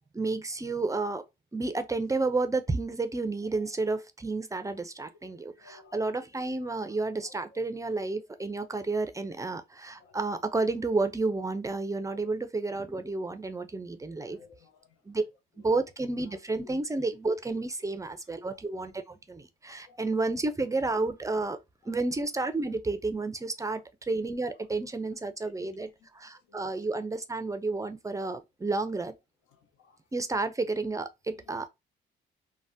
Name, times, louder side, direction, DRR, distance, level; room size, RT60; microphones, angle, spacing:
voice 1, 0.1-1.2 1.5-14.4 15.1-15.2 15.6-21.6 21.9-25.9 26.2-29.1 30.1-31.7, right 3 dB, 15° right, 0.4 m, -31 dB
voice 2, 5.1-8.0 8.4-8.5 9.5-10.2 13.9-15.2 15.6-15.7 16.3-16.4 16.6-16.8 17.8-18.6 19.7-20.0 21.8-22.1 23.6-23.8 24.5-24.7 25.2-26.8 28.2-28.3 28.7-28.9 29.5-30.0 30.3-30.5 31.3-31.7, left 5 dB, 85° left, 0.7 m, -59 dB
3.3 x 2.1 x 2.6 m
cardioid pair, 90°, 20 cm